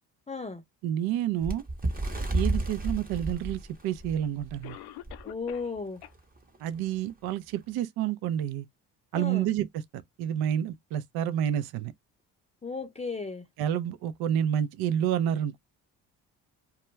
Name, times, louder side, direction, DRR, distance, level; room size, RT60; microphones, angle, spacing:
voice 1, 0.3-0.6 5.2-6.0 9.1-9.5 12.6-13.4, left 4 dB, 15° left, 0.5 m, -35 dB
voice 2, 0.8-1.6 2.3-4.8 6.6-8.7 9.1-11.9 13.6-15.6, right 10 dB, 65° right, 0.5 m, -29 dB
Bird, 1.4-4.6 5.1-5.2 5.5-5.8 6.5-6.6, right 2 dB, 20° right, 0.8 m, -31 dB
Cough, 3.5-3.6 4.6-5.8 6.0-6.1 6.7-6.8 7.3-7.4, left 13 dB, 70° left, 0.5 m, -45 dB
2.2 x 2.2 x 3.0 m
supercardioid pair, 60°, 41 cm